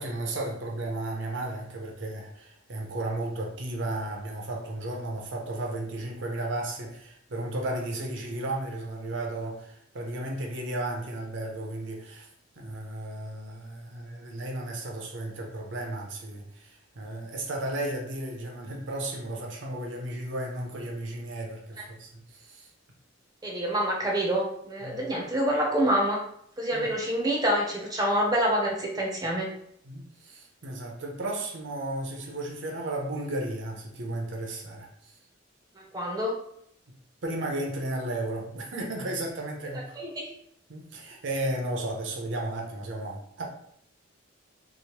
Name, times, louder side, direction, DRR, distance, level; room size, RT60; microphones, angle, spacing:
voice 1, 0.0-12.3 12.6-22.7 24.8-25.0 26.7-26.9 29.8-35.1 37.2-39.9 40.7-43.4, right 1 dB, 60° right, 0 dB, 0.6 m, -34 dB
voice 2, 23.4-26.2 26.6-29.5 35.9-36.3 40.0-40.3, right 1 dB, 20° right, -2 dB, 0.5 m, -26 dB
3.0 x 2.0 x 2.9 m, 0.70 s
head